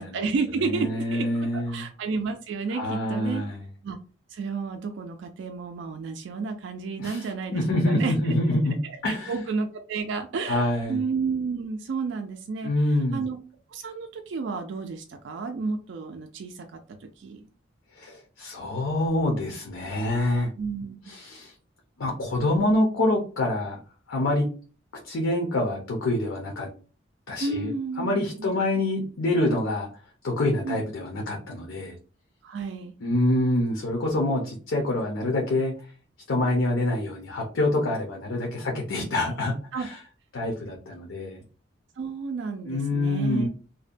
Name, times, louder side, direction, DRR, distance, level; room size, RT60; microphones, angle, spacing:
voice 1, 0.0-3.4 3.8-4.0 4.3-8.3 8.8-12.7 13.1-13.4 13.7-17.4 20.6-21.0 27.4-28.5 30.6-30.9 32.4-32.9 39.7-39.9 42.0-43.5, right 4 dB, 65° right, 5 dB, 0.3 m, -31 dB
voice 2, 0.6-1.9 2.7-3.6 7.0-8.8 9.0-9.4 10.5-11.0 12.6-13.2 18.0-20.5 21.1-21.5 22.0-23.8 24.1-24.5 25.0-26.7 27.3-27.7 28.0-29.9 30.2-31.9 33.0-35.7 36.3-40.0 40.3-41.4 42.6-43.5, left 1 dB, 80° left, 0 dB, 0.6 m, -26 dB
2.6 x 2.1 x 2.5 m, 0.38 s
head